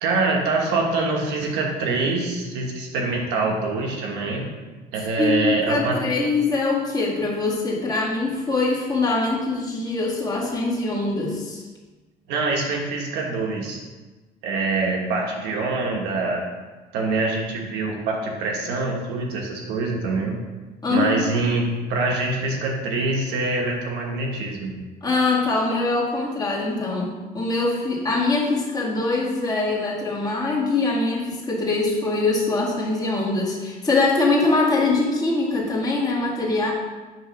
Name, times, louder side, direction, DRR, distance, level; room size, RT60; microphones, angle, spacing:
voice 1, 0.0-4.4 4.9-6.0 12.3-13.8 14.4-16.5 16.9-20.4 20.9-24.7, right 3 dB, 90° right, 0 dB, 1.4 m, -24 dB
voice 2, 5.2-11.6 20.8-21.4 25.0-36.7, left 3 dB, 25° left, -4 dB, 1.9 m, -23 dB
7.7 x 3.0 x 6.1 m, 1.2 s
cardioid pair, 110°, 17 cm